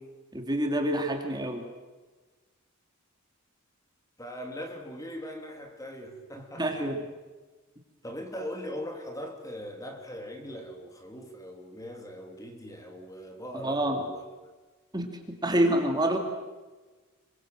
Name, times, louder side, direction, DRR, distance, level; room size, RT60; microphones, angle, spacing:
voice 1, 0.3-1.6 6.5-7.0 13.6-14.1 14.9-16.2, right 1 dB, 20° right, 4 dB, 2.7 m, -27 dB
voice 2, 4.2-6.9 8.0-14.5, equal, 15° left, 4 dB, 2.9 m, -40 dB
26.5 x 24.0 x 7.8 m, 1.3 s
head